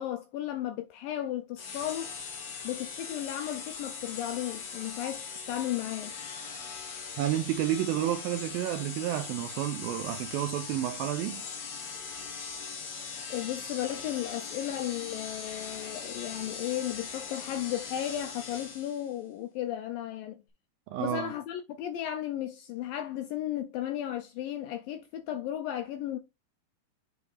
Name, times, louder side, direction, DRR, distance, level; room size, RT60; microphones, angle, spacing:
voice 1, 0.0-2.1 2.6-6.1 13.3-20.4 21.0-26.2, left 12 dB, 80° left, 2.0 m, -34 dB
sound 1, 1.6-19.1, left 5 dB, 55° left, 2.2 m, -40 dB
voice 2, 7.2-11.4 20.9-21.3, right 12 dB, 85° right, 2.1 m, -30 dB
7.9 x 3.4 x 4.8 m
omnidirectional pair, 4.8 m